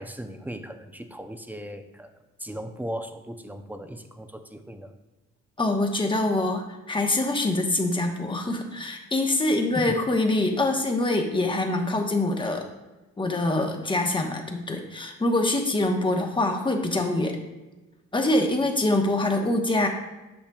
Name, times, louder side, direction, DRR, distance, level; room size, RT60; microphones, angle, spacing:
voice 1, 0.0-2.1 2.4-4.9 9.4-9.5 9.7-9.9, right 1 dB, 5° right, 7 dB, 0.6 m, -37 dB
voice 2, 5.6-12.6 13.2-17.4 18.1-19.9, left 2 dB, 15° left, 3 dB, 1.1 m, -24 dB
8.8 x 6.3 x 2.3 m, 1.1 s
cardioid pair, 90°, 30 cm